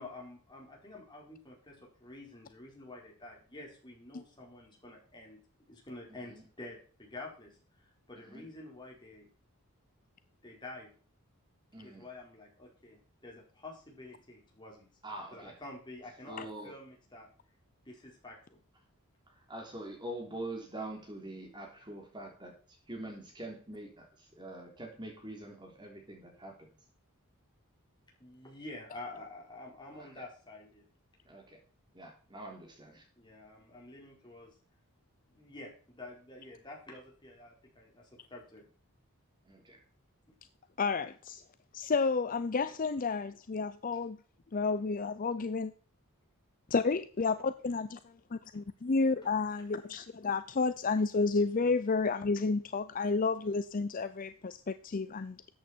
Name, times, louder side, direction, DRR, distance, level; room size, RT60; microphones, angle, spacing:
voice 1, 0.0-5.4 5.7-7.6 8.1-9.3 10.4-10.9 11.8-14.9 15.3-17.3 17.8-18.6 28.2-30.9 33.2-34.5 35.3-38.7, left 2 dB, 20° left, 4.7 m, -49 dB
voice 2, 6.1-6.4 8.3-8.5 11.7-12.1 15.0-15.5 16.3-16.8 19.3-22.6 22.9-26.7 29.9-30.2 31.3-31.6 31.9-33.1 39.4-39.8, right 1 dB, 20° right, 3.4 m, -44 dB
voice 3, 40.8-41.4 41.7-44.2 44.5-45.7 46.7-48.0 48.5-55.5, left 4 dB, 40° left, 0.5 m, -31 dB
13.5 x 8.6 x 4.5 m
head